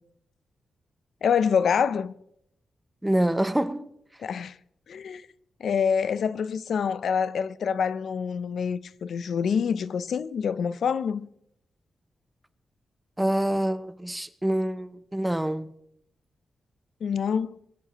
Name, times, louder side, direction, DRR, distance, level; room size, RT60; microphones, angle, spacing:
voice 1, 1.2-2.1 4.2-4.5 4.9-5.2 5.6-11.3 17.0-17.6, left 7 dB, 70° left, 0.5 m, -26 dB
voice 2, 3.0-3.9 13.2-15.7, right 1 dB, 5° right, 0.6 m, -26 dB
23.0 x 15.0 x 3.0 m
wide cardioid pair, 140°, 0 cm